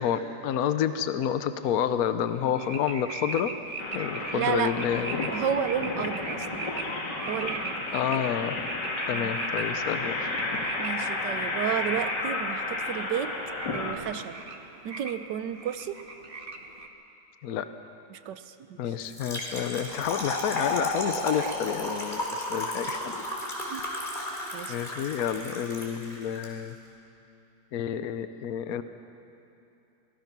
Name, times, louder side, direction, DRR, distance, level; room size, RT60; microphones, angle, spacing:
voice 1, 0.0-3.6 3.9-5.3 7.9-8.6 9.1-10.7 17.4-17.7 18.8-23.2 24.7-26.8 27.7-28.8, left 9 dB, 65° left, 11 dB, 1.2 m, -29 dB
sound 1, 2.3-16.9, right 3 dB, 35° right, 1.3 m, -40 dB
sound 2, 3.8-13.9, left 2 dB, 85° left, 2.6 m, -32 dB
voice 2, 4.2-4.8 5.3-6.6 7.3-7.8 9.1-9.4 10.8-13.3 13.7-14.4 14.8-16.0 18.1-18.8 21.4-21.6 23.7-23.8 24.5-24.8, right 9 dB, 80° right, 12 dB, 1.4 m, -32 dB
Trickle dribble / Fill (with liquid), 19.0-26.5, left 1 dB, 25° left, 3.6 m, -33 dB
25.5 x 19.0 x 6.1 m, 2.8 s
omnidirectional pair, 1.9 m